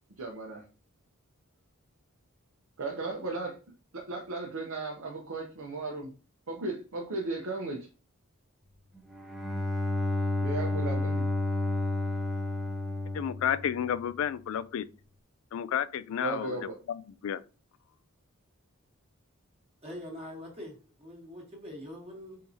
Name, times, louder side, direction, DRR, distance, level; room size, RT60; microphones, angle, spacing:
voice 1, 0.2-0.6 2.8-3.6 3.9-6.1 6.5-7.9 10.4-11.2 16.2-16.8, right 3 dB, 75° right, 0.8 m, -35 dB
Bowed string instrument, 9.1-14.1, left 2 dB, ahead, 0.6 m, -31 dB
voice 2, 13.1-14.9 15.5-16.6 16.9-17.4, left 9 dB, 70° left, 0.3 m, -31 dB
voice 3, 19.8-22.4, left 1 dB, 30° right, 1.2 m, -43 dB
4.2 x 3.7 x 2.7 m
head